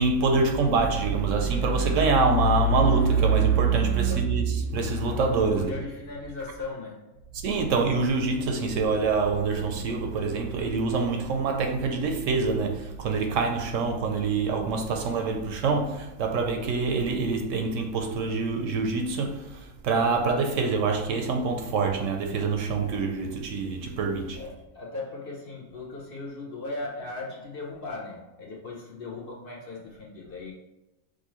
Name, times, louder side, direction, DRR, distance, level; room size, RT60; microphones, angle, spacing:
voice 1, 0.0-5.7 7.3-24.4, right 4 dB, 70° right, 0.9 m, -25 dB
voice 2, 5.5-7.3 24.4-30.5, left 3 dB, 50° left, 0.8 m, -38 dB
6.1 x 2.5 x 2.9 m
omnidirectional pair, 1.5 m